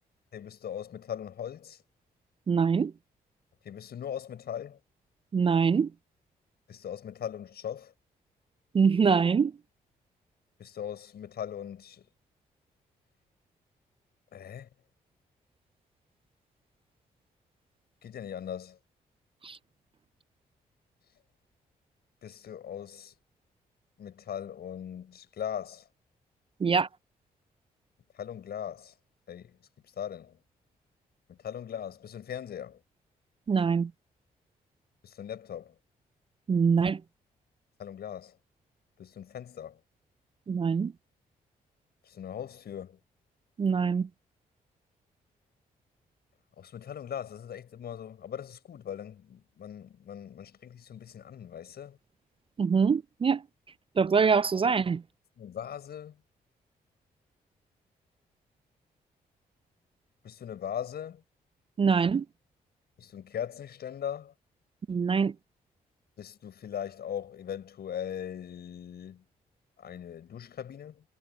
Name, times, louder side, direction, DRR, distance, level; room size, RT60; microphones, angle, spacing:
voice 1, 0.3-1.8 3.6-4.8 6.7-7.9 10.6-12.0 14.3-14.7 18.0-18.8 22.2-23.1 24.0-25.8 28.1-28.9 29.3-29.6 30.0-30.4 31.3-32.8 35.0-35.7 37.8-38.3 39.0-39.8 42.1-43.0 46.6-52.0 55.4-56.2 60.2-61.2 63.0-64.3 66.2-69.2 69.8-71.0, left 9 dB, 70° left, 6.3 m, -39 dB
voice 2, 2.5-2.9 5.3-5.9 8.7-9.5 19.4-19.6 26.6-26.9 33.5-33.9 36.5-37.0 40.5-40.9 43.6-44.1 52.6-53.4 54.0-55.0 61.8-62.3 64.9-65.3, right 5 dB, 30° right, 0.4 m, -24 dB
supercardioid pair, 50°, 17 cm